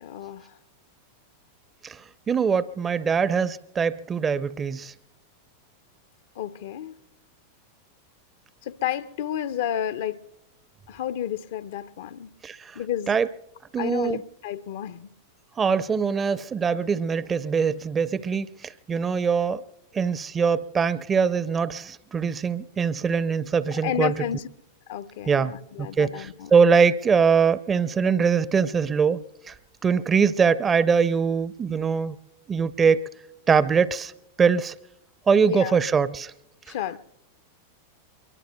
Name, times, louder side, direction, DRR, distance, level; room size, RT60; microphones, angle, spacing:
voice 1, 0.0-0.5 6.4-7.0 8.6-10.2 10.9-12.3 12.7-13.2 13.8-15.1 23.8-24.5 24.9-26.5 35.4-35.8 36.7-37.0, left 10 dB, 55° left, 0.6 m, -31 dB
voice 2, 2.3-4.9 12.4-12.8 13.1-13.3 13.7-14.2 15.6-19.6 19.9-24.1 25.3-25.5 25.8-29.2 29.5-29.6 29.8-32.2 32.5-33.1 33.5-34.1 34.4-34.7 35.3-36.3, right 6 dB, 20° right, 0.6 m, -22 dB
23.5 x 22.5 x 2.2 m
figure-of-eight pair, 90°, 0 cm